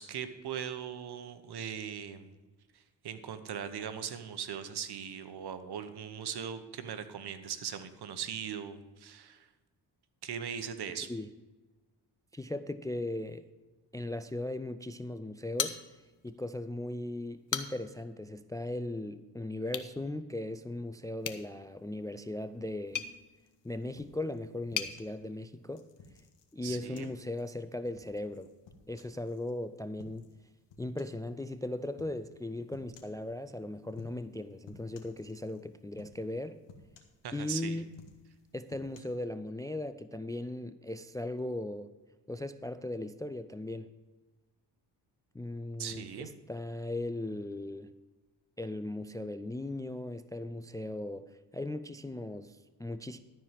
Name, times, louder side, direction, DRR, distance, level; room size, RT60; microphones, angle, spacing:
voice 1, 0.0-2.3 2.7-9.5 10.2-11.1 26.6-27.1 37.2-37.8 45.8-46.3, right 8 dB, 65° right, 11 dB, 1.1 m, -39 dB
voice 2, 12.3-13.4 13.9-15.8 16.2-23.1 23.6-25.9 26.5-28.5 28.9-30.3 30.8-36.6 37.3-37.9 38.5-41.9 42.3-43.9 45.3-47.9 48.6-53.2, left 1 dB, 10° left, 12 dB, 0.4 m, -38 dB
sound 1, 15.6-16.3 16.7-16.8 17.3-18.0 19.6-19.9 21.2-25.0, left 8 dB, 45° left, 0.9 m, -39 dB
sound 2, 23.0-25.2 25.7-29.5 30.0-30.4 30.7-31.3 32.0-32.2 32.7-33.2 33.9-34.4 34.7-35.6 36.0-36.4 36.7-37.5 37.9-39.0, left 4 dB, 80° left, 1.6 m, -56 dB
13.0 x 4.7 x 7.4 m, 1.2 s
cardioid pair, 75°, 43 cm